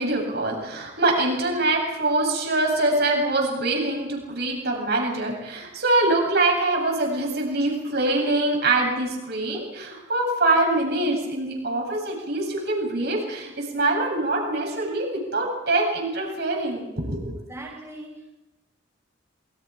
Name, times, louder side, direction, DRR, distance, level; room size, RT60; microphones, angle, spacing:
voice 1, 0.0-17.3, right 2 dB, 55° right, 1 dB, 7.9 m, -24 dB
voice 2, 17.2-18.3, right 2 dB, 15° right, -3 dB, 5.8 m, -40 dB
28.0 x 24.0 x 5.1 m, 0.99 s
head